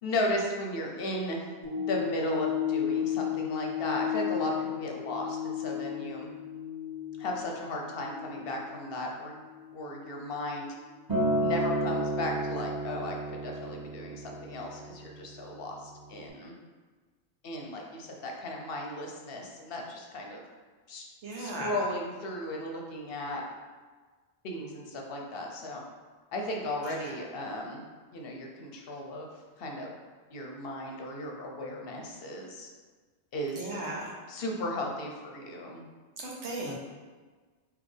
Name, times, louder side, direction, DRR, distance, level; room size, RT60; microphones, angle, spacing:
voice 1, 0.0-1.5 1.7-6.3 7.2-9.4 9.7-10.7 11.4-16.5 17.4-20.4 20.9-21.1 21.4-23.4 24.4-25.8 26.3-27.8 28.1-29.3 29.6-29.9 30.3-32.7 33.3-33.7 34.3-35.8, left 1 dB, 65° left, 0 dB, 0.8 m, -35 dB
sound 1, 1.6-10.0 10.5-10.6, left 11 dB, 45° right, 0.8 m, -34 dB
Acoustic guitar, 11.1-15.4 16.2-16.3, right 1 dB, 20° right, 1.2 m, -31 dB
voice 2, 21.2-21.7 26.8-27.0 33.6-34.1 36.2-36.7, right 2 dB, 90° right, -2 dB, 1.2 m, -36 dB
4.1 x 3.0 x 3.2 m, 1.4 s
omnidirectional pair, 1.1 m